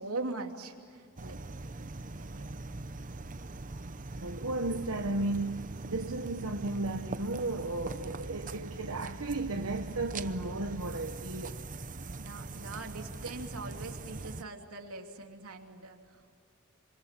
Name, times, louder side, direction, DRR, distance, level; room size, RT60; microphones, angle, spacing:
voice 1, 0.0-1.4 2.2-2.7 12.2-16.4, right 3 dB, 90° right, 2.9 m, -41 dB
sound 1, 1.2-14.4, right 2 dB, 40° right, 0.9 m, -42 dB
voice 2, 3.8-11.6, right 2 dB, 70° right, 1.2 m, -34 dB
27.5 x 26.0 x 7.5 m
head